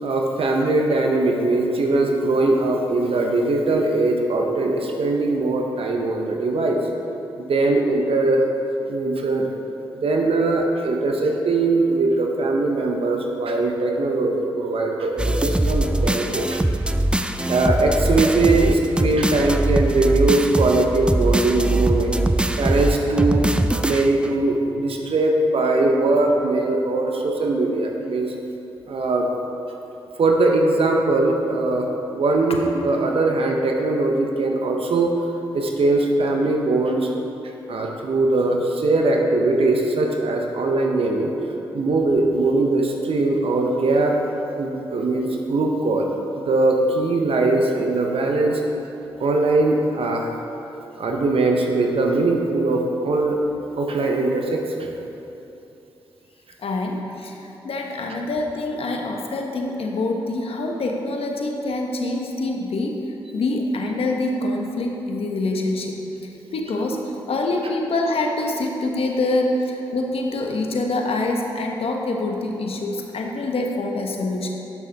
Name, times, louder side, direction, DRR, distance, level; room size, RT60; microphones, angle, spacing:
voice 1, 0.0-6.8 7.4-8.4 8.9-9.5 9.9-16.6 17.5-22.2 22.6-23.4 23.8-28.3 28.9-29.3 30.2-35.2 35.5-44.2 44.6-46.1 46.4-48.6 49.2-50.3 51.0-53.4 53.8-54.9, right 2 dB, 60° right, 1 dB, 0.9 m, -21 dB
sound 1, 15.2-24.3, right 1 dB, 10° right, 0.5 m, -22 dB
voice 2, 56.6-74.5, left 2 dB, 65° left, 1 dB, 1.0 m, -25 dB
11.5 x 6.4 x 3.5 m, 3.0 s
supercardioid pair, 45°, 11 cm